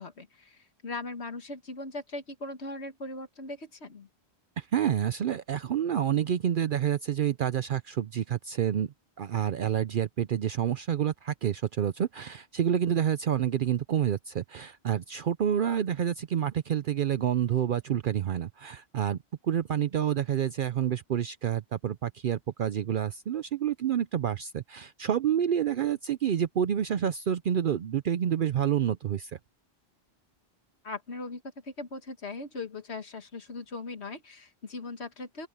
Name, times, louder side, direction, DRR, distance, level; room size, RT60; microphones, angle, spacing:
voice 1, 0.0-4.1 30.8-35.5, left 3 dB, 90° left, 2.0 m, -39 dB
voice 2, 4.6-19.2 19.4-29.3, right 9 dB, 60° right, 0.7 m, -28 dB
open air
omnidirectional pair, 1.1 m